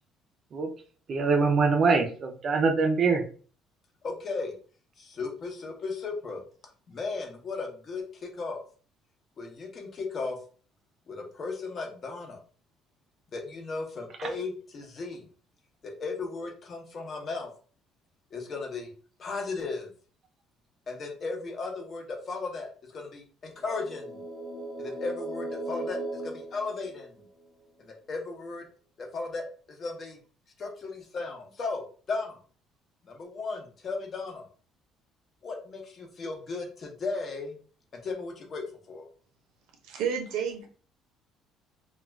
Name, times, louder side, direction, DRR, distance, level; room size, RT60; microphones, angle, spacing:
voice 1, 1.1-3.2 14.2-14.3, right 4 dB, 35° right, 4 dB, 0.5 m, -24 dB
voice 2, 4.0-4.5 5.0-6.4 6.9-8.6 9.4-10.4 11.1-12.4 13.3-15.3 15.8-17.5 18.3-18.9 19.2-19.9 20.9-24.2 24.8-27.2 27.8-28.6 29.0-29.4 29.8-30.2 30.6-32.4 33.0-34.5 35.4-37.6 38.0-39.1, left 3 dB, 35° left, 2 dB, 0.7 m, -36 dB
sound 1, 23.6-27.4, right 1 dB, 5° left, 0.9 m, -38 dB
voice 3, 39.8-40.7, right 7 dB, 80° right, 4 dB, 0.6 m, -30 dB
2.3 x 2.3 x 3.1 m, 0.41 s
cardioid pair, 145°, 0 cm